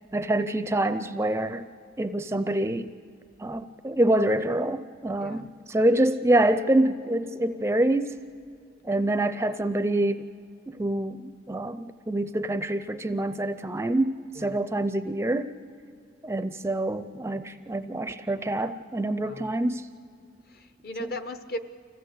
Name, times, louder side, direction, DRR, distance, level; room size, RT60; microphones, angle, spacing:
voice 1, 0.1-1.6 2.0-2.9 3.4-8.2 8.8-10.3 10.7-15.5 16.2-19.9, right 1 dB, 15° right, 11 dB, 0.4 m, -26 dB
voice 2, 5.2-5.5 14.4-14.6 19.2-19.5 20.5-21.6, left 1 dB, 55° left, 10 dB, 0.9 m, -37 dB
25.5 x 16.0 x 8.3 m, 2.3 s
head